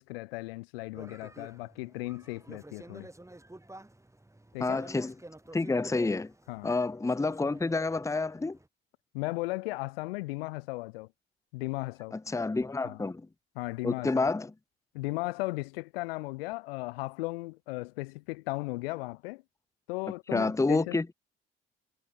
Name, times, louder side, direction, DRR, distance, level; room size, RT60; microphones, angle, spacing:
voice 1, 0.0-3.1 4.5-4.8 6.5-6.7 9.1-11.1 11.5-12.2 12.8-13.0 13.5-14.3 14.9-19.4 19.9-21.0, left 23 dB, 70° left, 1.4 m, -36 dB
sound 1, 0.9-8.7, right 1 dB, 10° right, 6.2 m, -50 dB
voice 2, 4.6-5.1 5.5-6.3 6.6-8.6 12.1-13.3 13.8-14.5 20.3-21.1, left 3 dB, 10° left, 0.9 m, -29 dB
figure-of-eight pair, 50°, 30 cm